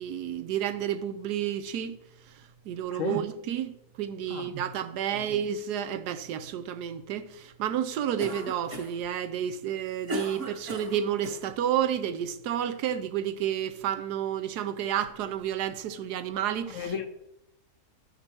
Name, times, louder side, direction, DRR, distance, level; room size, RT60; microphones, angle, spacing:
voice 1, 0.0-1.9 2.7-3.7 4.0-16.9, right 10 dB, 85° right, 1.2 m, -30 dB
Cough, 8.2-9.1 9.6-11.4, equal, 50° right, 1.9 m, -36 dB
voice 2, 16.7-17.1, left 8 dB, 65° left, 0.9 m, -33 dB
12.0 x 5.4 x 4.5 m
omnidirectional pair, 1.7 m